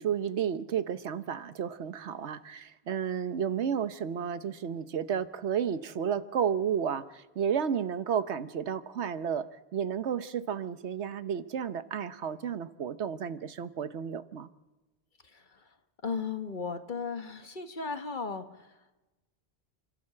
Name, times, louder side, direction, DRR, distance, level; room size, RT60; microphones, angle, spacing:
voice 1, 0.0-9.5 9.7-14.5, right 8 dB, 80° right, 13 dB, 1.2 m, -32 dB
voice 2, 15.2-15.7 16.0-18.9, left 5 dB, 45° left, 9 dB, 1.3 m, -36 dB
30.0 x 12.0 x 7.6 m, 1.1 s
omnidirectional pair, 1.1 m